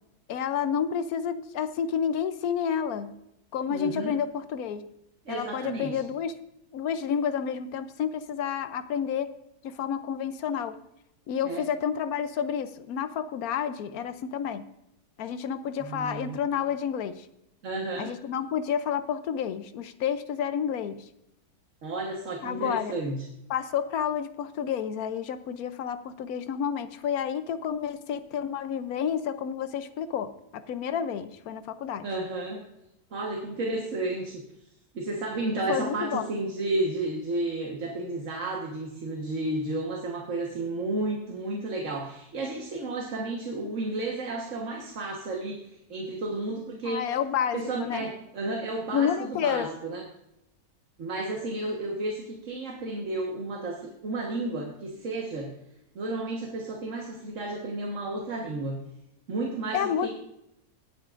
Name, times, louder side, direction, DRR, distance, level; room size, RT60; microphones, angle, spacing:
voice 1, 0.3-3.2 3.5-4.8 5.3-6.3 6.7-9.3 9.6-10.8 11.3-14.6 15.2-17.3 18.0-21.1 22.4-22.9 23.5-32.1 35.7-36.3 46.8-48.0 48.9-49.7 59.7-60.1, left 8 dB, 70° left, 12 dB, 1.1 m, -30 dB
voice 2, 3.7-4.1 5.2-6.0 11.4-11.6 15.8-16.4 17.6-18.1 21.8-23.2 32.0-32.6 33.1-34.4 34.9-47.0 47.5-50.0 51.0-55.5 55.9-58.8 59.3-60.1, right 2 dB, 55° right, 0 dB, 1.6 m, -32 dB
18.5 x 8.3 x 2.5 m, 0.83 s
omnidirectional pair, 1.7 m